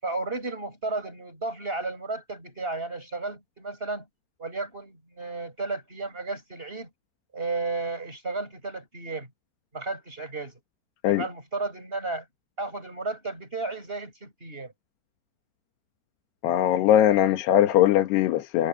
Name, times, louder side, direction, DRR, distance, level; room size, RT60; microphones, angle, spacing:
voice 1, 0.0-4.1 4.4-6.9 7.3-9.3 9.7-10.5 11.1-12.2 12.6-14.7, right 3 dB, 15° right, 6.6 m, -33 dB
voice 2, 16.4-18.7, left 12 dB, 85° left, 3.6 m, -20 dB
omnidirectional pair, 4.6 m